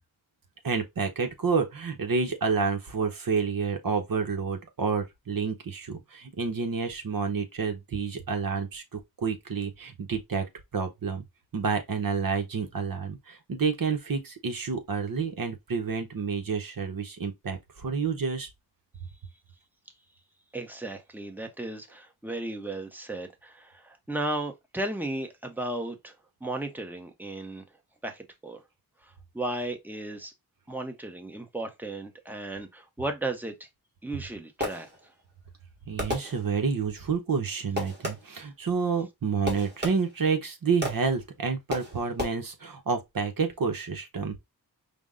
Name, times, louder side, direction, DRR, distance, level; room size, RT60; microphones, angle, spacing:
voice 1, 0.6-10.4 10.7-11.2 11.5-18.5 35.9-44.4, right 5 dB, 60° right, 0.9 m, -29 dB
voice 2, 20.5-26.1 26.4-27.6 28.0-28.6 29.0-30.3 30.7-33.7 34.0-34.9, right 1 dB, 5° right, 0.7 m, -35 dB
Fireworks, 34.1-35.2 36.0-36.8 37.8-38.5 39.5-40.3 40.8-41.2 41.7-42.3, left 1 dB, 25° right, 1.4 m, -34 dB
5.2 x 2.1 x 3.6 m
wide cardioid pair, 120°, 38 cm